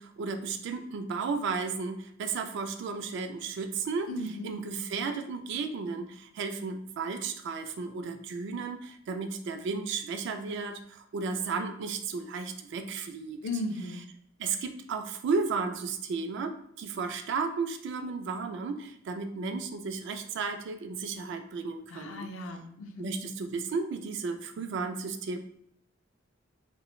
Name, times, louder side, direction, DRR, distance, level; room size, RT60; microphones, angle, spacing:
voice 1, 0.0-4.1 4.4-13.4 14.4-22.3 23.0-25.4, right 4 dB, 65° right, 7 dB, 0.3 m, -34 dB
voice 2, 4.1-4.5 13.4-14.0 21.9-23.1, left 2 dB, 80° left, 5 dB, 0.4 m, -36 dB
3.0 x 2.1 x 2.3 m, 0.71 s
head